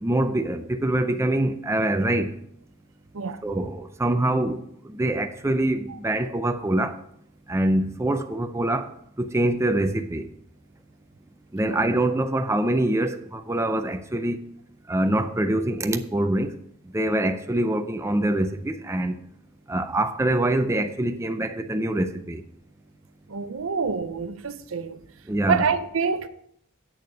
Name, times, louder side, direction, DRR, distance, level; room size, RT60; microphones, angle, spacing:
voice 1, 0.0-2.3 3.4-4.6 4.9-7.0 7.5-8.9 9.2-10.3 11.5-14.4 14.9-16.5 16.9-19.2 19.7-22.4 25.3-25.6, right 1 dB, 15° right, 0.5 m, -24 dB
voice 2, 23.3-25.0 25.5-26.3, right 5 dB, 80° right, 0.7 m, -27 dB
8.6 x 6.6 x 5.0 m
head